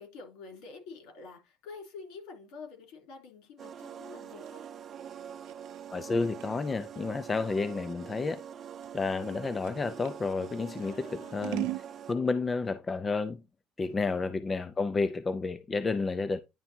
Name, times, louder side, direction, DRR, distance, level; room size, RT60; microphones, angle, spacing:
voice 1, 0.0-4.7 7.1-7.2 10.8-11.6 13.8-14.2, left 4 dB, 70° left, 3.5 m, -48 dB
sound 1, 3.6-12.3, right 8 dB, 30° right, 0.7 m, -45 dB
Scissors, 4.0-10.2 10.7-11.9, right 19 dB, 75° right, 0.5 m, -41 dB
voice 2, 5.9-8.4 8.9-11.7 12.1-13.4 13.8-16.4, left 4 dB, 15° left, 0.4 m, -31 dB
10.0 x 3.5 x 4.4 m
cardioid pair, 170°, 0 cm